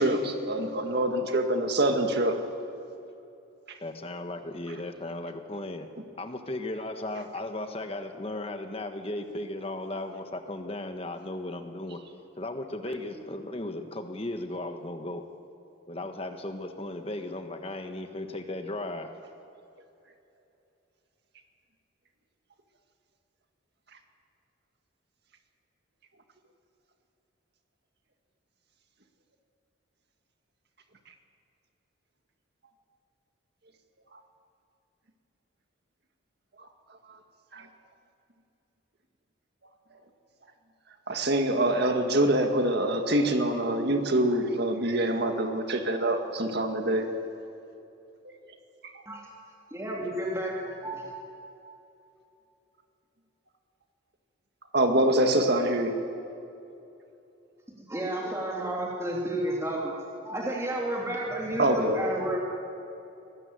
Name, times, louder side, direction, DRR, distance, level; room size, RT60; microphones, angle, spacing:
voice 1, 0.0-2.4 37.5-37.7 41.1-47.1 48.2-48.3 48.9-49.0 54.7-55.9 61.6-62.0, right 1 dB, 55° right, 5 dB, 1.9 m, -25 dB
voice 2, 3.8-5.9 6.2-12.0 12.4-15.2 15.9-19.1, left 1 dB, 30° left, 6 dB, 1.3 m, -36 dB
voice 3, 49.8-51.1 57.9-62.4, right 1 dB, 15° right, -3 dB, 3.1 m, -31 dB
23.5 x 13.0 x 9.4 m, 2.8 s
head